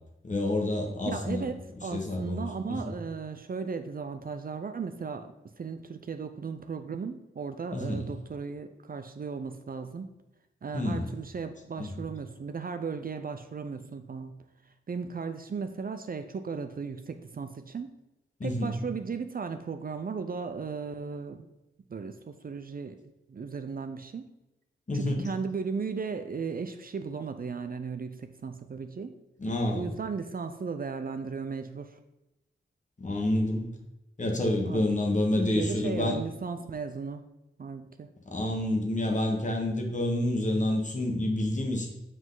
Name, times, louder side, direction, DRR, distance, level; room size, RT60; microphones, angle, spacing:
voice 1, 0.2-2.9 7.7-8.1 10.7-11.0 11.8-12.0 18.4-18.7 24.9-25.3 29.4-29.9 33.0-33.7 34.2-36.2 38.3-41.9, left 1 dB, 35° left, 0 dB, 1.4 m, -28 dB
voice 2, 1.1-10.1 10.6-14.4 14.9-17.9 18.4-21.4 21.9-23.0 23.3-24.3 24.9-29.2 29.7-32.0 34.6-34.9 35.4-37.2 37.6-38.1, right 5 dB, 45° right, 8 dB, 0.5 m, -36 dB
7.8 x 5.0 x 3.9 m, 0.94 s
wide cardioid pair, 115°, 21 cm